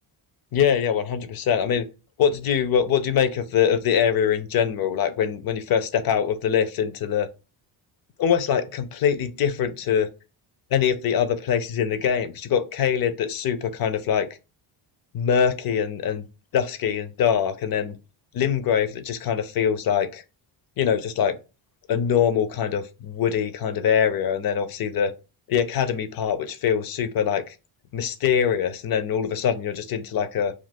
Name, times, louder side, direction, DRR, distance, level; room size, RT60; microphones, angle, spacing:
voice 1, 0.5-1.9 2.2-7.3 8.2-10.1 10.7-14.3 15.1-16.2 16.5-18.0 18.3-20.2 20.8-21.4 21.9-25.1 25.5-27.5 27.9-30.5, left 8 dB, 50° left, 0.4 m, -23 dB
2.4 x 2.3 x 3.4 m
cardioid pair, 105°, 49 cm